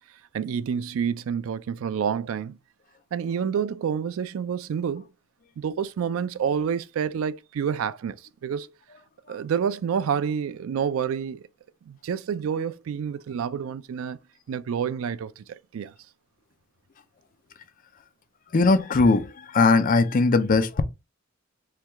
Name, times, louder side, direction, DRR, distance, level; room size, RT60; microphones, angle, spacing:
voice 1, 0.3-2.6 3.1-5.1 5.6-8.7 9.3-11.5 11.9-14.2 14.5-15.9, right 7 dB, 75° right, 0.3 m, -28 dB
voice 2, 18.5-20.8, left 3 dB, 40° left, 0.5 m, -20 dB
4.5 x 2.3 x 3.4 m
head